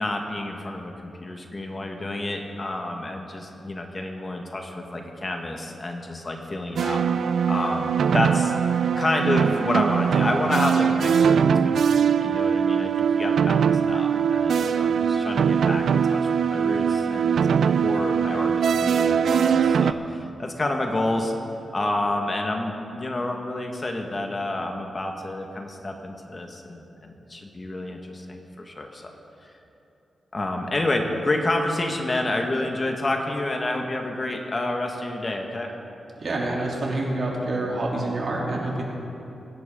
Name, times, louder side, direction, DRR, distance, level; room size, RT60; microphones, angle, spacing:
voice 1, 0.0-7.0 7.5-8.5 8.9-21.3 21.7-29.1 29.4-29.5 30.3-35.7, left 2 dB, 35° left, 2 dB, 1.7 m, -29 dB
sound 1, 6.8-19.9, right 7 dB, 80° right, 0.4 m, -21 dB
voice 2, 36.2-38.8, right 2 dB, 60° right, -3 dB, 3.3 m, -27 dB
23.5 x 11.0 x 3.9 m, 2.8 s
cardioid pair, 75°, 0 cm